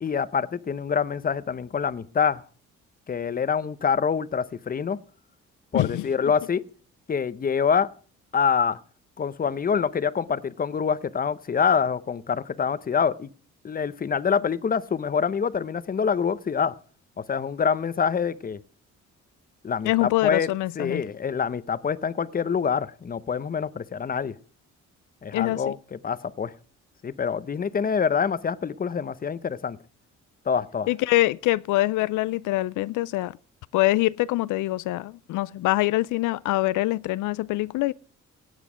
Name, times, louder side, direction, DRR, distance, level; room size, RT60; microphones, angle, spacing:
voice 1, 0.0-2.4 3.1-5.0 5.7-6.6 7.1-7.9 8.3-8.8 9.2-13.3 13.6-16.7 17.2-18.6 19.6-20.5 20.8-24.3 25.2-26.5 27.0-29.8 30.5-30.9, left 6 dB, 30° left, 0.7 m, -26 dB
voice 2, 5.7-6.3 19.9-21.0 25.3-25.7 30.9-33.4 33.7-37.9, left 18 dB, 80° left, 0.5 m, -24 dB
16.5 x 8.2 x 5.0 m
cardioid pair, 90°, 30 cm